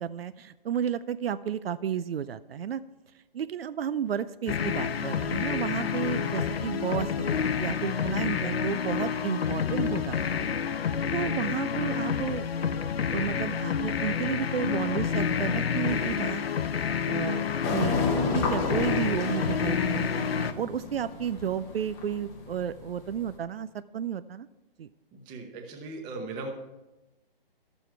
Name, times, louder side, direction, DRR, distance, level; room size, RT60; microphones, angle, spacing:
voice 1, 0.0-2.8 3.3-10.5 11.1-12.5 13.1-16.4 17.0-17.4 17.7-18.0 18.3-24.5 24.8-24.9, right 8 dB, 75° right, 14 dB, 0.5 m, -32 dB
sound 1, 4.5-20.5, left 7 dB, 80° left, 0.7 m, -29 dB
sound 2, 17.6-23.3, left 3 dB, 10° left, 0.8 m, -32 dB
voice 2, 25.1-26.5, right 2 dB, 15° right, 3 dB, 0.9 m, -38 dB
12.5 x 7.0 x 4.5 m, 1.0 s
hypercardioid pair, 155°, 30 cm